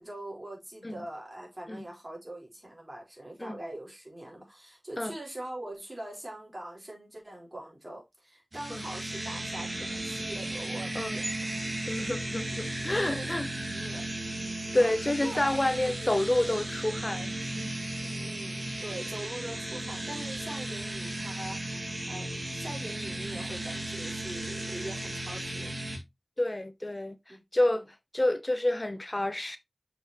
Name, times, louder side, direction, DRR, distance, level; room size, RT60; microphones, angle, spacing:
voice 1, 0.0-11.5 12.5-12.7 13.0-14.1 14.4-16.7 18.0-21.8 22.1-25.7 27.3-27.4 27.7-27.8, right 1 dB, 40° right, 4.0 m, -43 dB
sound 1, 8.5-26.0, right 1 dB, 55° right, 2.3 m, -35 dB
voice 2, 11.9-13.5 14.7-17.8 26.4-27.8 28.1-29.6, left 1 dB, 35° left, 0.6 m, -29 dB
6.5 x 6.0 x 2.9 m
wide cardioid pair, 50°, 0 cm